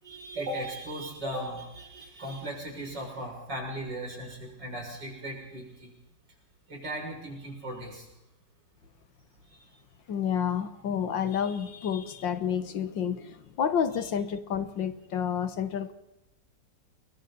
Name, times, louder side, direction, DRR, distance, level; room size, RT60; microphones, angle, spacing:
voice 1, 0.0-5.9 6.7-8.1 13.9-14.1, right 1 dB, 65° right, 0 dB, 7.3 m, -37 dB
voice 2, 10.1-15.9, left 8 dB, 75° left, 11 dB, 2.0 m, -30 dB
29.5 x 22.0 x 4.2 m, 0.90 s
omnidirectional pair, 2.0 m